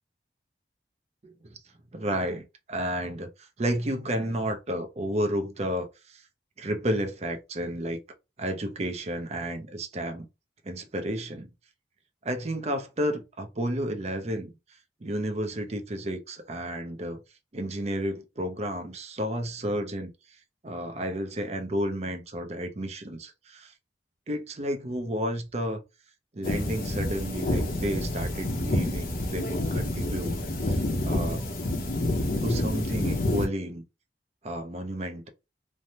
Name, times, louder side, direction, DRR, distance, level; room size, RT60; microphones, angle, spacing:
voice 1, 1.2-1.6 1.9-6.2 6.6-8.0 8.4-10.3 10.6-11.5 12.2-14.5 15.0-17.2 17.5-20.1 20.6-23.7 24.3-25.8 26.3-30.4 30.6-31.4 32.4-33.8 34.4-35.3, right 1 dB, 35° right, 0.6 m, -32 dB
sound 1, 26.4-33.5, left 1 dB, 50° left, 0.7 m, -28 dB
3.3 x 2.1 x 2.7 m
head